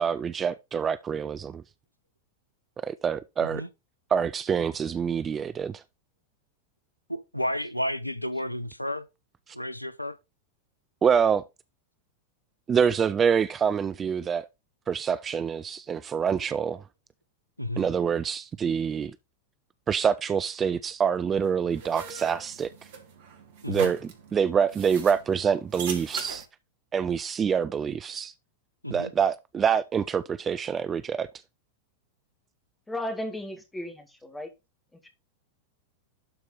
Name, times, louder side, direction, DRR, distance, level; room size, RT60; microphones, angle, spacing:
voice 1, 0.0-1.6 2.8-3.6 4.1-5.8 11.0-11.4 12.7-14.5 14.9-16.8 17.8-19.1 19.9-22.7 23.7-24.0 24.3-26.5 26.9-28.3 28.9-31.3, right 7 dB, 20° right, 0.4 m, -26 dB
voice 2, 7.1-9.1 9.5-10.2 17.6-17.9 23.6-23.9 28.8-29.1, left 1 dB, 90° left, 0.6 m, -32 dB
sound 1, 21.4-26.5, right 6 dB, 55° right, 1.8 m, -41 dB
voice 3, 32.9-34.5 35.0-35.1, left 1 dB, 10° left, 2.5 m, -35 dB
11.5 x 4.6 x 3.9 m
figure-of-eight pair, 90°, 0 cm